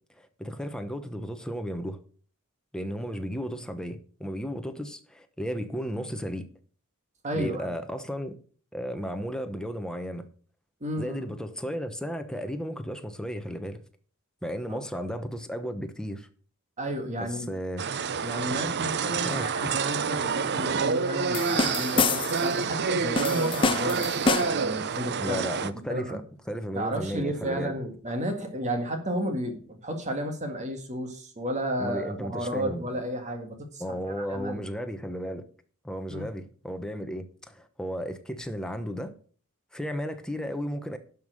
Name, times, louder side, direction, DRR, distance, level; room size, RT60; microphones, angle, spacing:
voice 1, 0.2-2.0 2.7-6.5 7.3-8.3 8.7-10.2 11.0-13.8 14.4-16.3 17.2-17.8 19.2-19.5 25.2-26.2 26.5-27.7 31.8-32.8 33.8-35.4 35.8-39.1 39.7-41.0, equal, 5° left, 1.0 m, -34 dB
voice 2, 7.2-7.7 10.8-11.3 14.7-14.8 16.8-17.5 18.2-25.4 25.9-26.2 26.7-34.6 36.1-36.3, right 1 dB, 35° right, 1.9 m, -32 dB
sound 1, 17.8-25.7, right 5 dB, 50° right, 0.6 m, -28 dB
sound 2, 21.3-22.5 23.2-24.7, left 4 dB, 25° left, 0.6 m, -27 dB
11.5 x 5.7 x 6.4 m
head